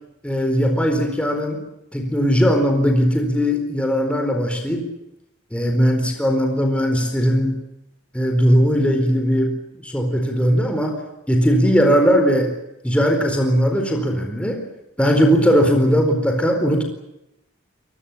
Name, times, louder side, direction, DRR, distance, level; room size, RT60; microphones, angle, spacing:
voice 1, 0.2-1.6 1.9-4.9 5.5-7.6 8.1-10.9 11.3-12.5 12.8-14.6 15.0-16.8, equal, 5° left, 4 dB, 4.4 m, -19 dB
27.0 x 21.5 x 7.4 m, 0.86 s
head